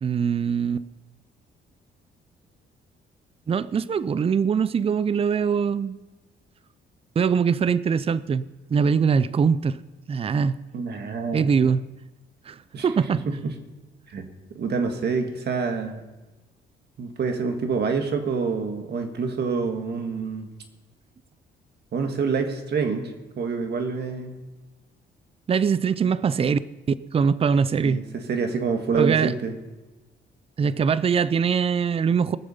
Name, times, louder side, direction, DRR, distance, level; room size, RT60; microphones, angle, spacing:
voice 1, 0.0-0.8 3.5-6.0 7.2-8.4 8.7-9.8 10.1-10.5 11.3-11.8 12.5-12.6 12.8-13.2 25.5-26.6 27.1-28.0 28.9-29.3 30.6-32.4, right 6 dB, 30° right, 17 dB, 0.4 m, -22 dB
voice 2, 10.7-11.5 12.7-12.9 13.1-13.5 14.1-14.3 14.6-16.0 17.0-20.5 21.9-24.4 27.8-29.6, right 5 dB, 55° right, 5 dB, 1.7 m, -27 dB
20.0 x 6.8 x 5.5 m, 1.1 s
cardioid pair, 90°, 20 cm